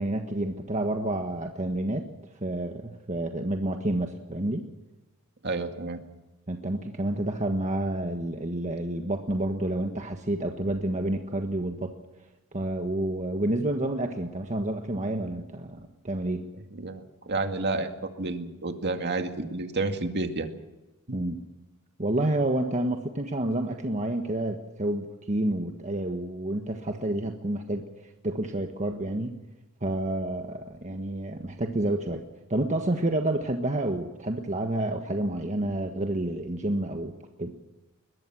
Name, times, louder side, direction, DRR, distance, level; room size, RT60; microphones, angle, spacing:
voice 1, 0.0-2.0 2.4-4.6 6.5-11.9 12.5-16.4 21.1-21.4 22.0-27.8 28.2-29.4 29.8-32.2 32.5-37.1 37.4-37.6, right 1 dB, 35° right, 4 dB, 1.5 m, -29 dB
voice 2, 5.4-6.0 16.7-20.5, right 3 dB, 50° right, 5 dB, 2.2 m, -30 dB
22.0 x 21.0 x 6.2 m, 1.1 s
head